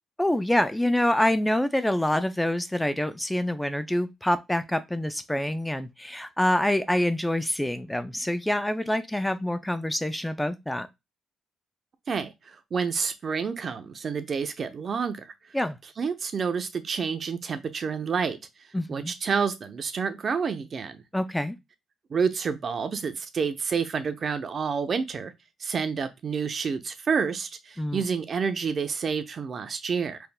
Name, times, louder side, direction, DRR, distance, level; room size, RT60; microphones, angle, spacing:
voice 1, 0.2-10.9 15.5-15.8 18.7-19.1 21.1-21.6 27.8-28.0, left 1 dB, 5° left, 0.4 m, -26 dB
voice 2, 12.1-15.3 16.0-18.4 18.9-21.0 22.1-25.3 25.6-30.2, right 6 dB, 45° right, 0.7 m, -29 dB
4.4 x 3.4 x 2.2 m
cardioid pair, 90°, 0 cm